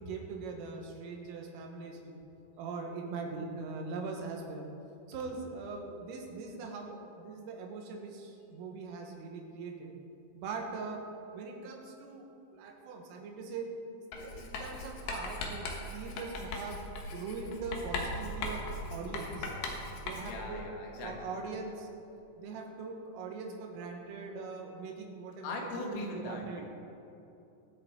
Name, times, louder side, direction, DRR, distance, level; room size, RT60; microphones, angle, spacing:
voice 1, 0.0-2.1 2.6-4.7 5.1-9.9 10.3-11.0 11.3-12.3 12.5-13.8 14.1-15.7 15.9-16.8 17.1-19.5 20.0-21.9 22.4-26.6, right 4 dB, 80° right, 2 dB, 4.0 m, -41 dB
Writing, 14.1-20.5, left 2 dB, 65° left, 2.7 m, -39 dB
voice 2, 20.2-21.2 25.4-26.6, left 2 dB, 85° left, 0 dB, 4.3 m, -39 dB
22.5 x 7.9 x 4.5 m, 2.9 s
omnidirectional pair, 5.8 m